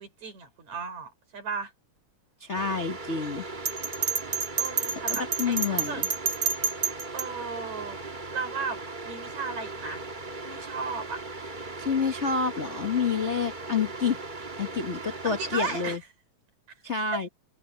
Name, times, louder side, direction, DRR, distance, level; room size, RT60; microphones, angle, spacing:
voice 1, 0.0-1.7 4.6-6.0 7.1-8.0 8.3-10.0 10.3-11.2 15.2-16.0 17.1-17.2, right 4 dB, 70° right, 6.3 m, -35 dB
voice 2, 2.4-3.5 5.2-6.1 11.8-14.2 14.6-16.0 16.8-17.3, left 5 dB, 70° left, 0.6 m, -28 dB
sound 1, 2.5-16.0, right 3 dB, 25° right, 1.2 m, -38 dB
Bell, 3.7-7.3, right 5 dB, 40° right, 2.7 m, -28 dB
omnidirectional pair, 3.4 m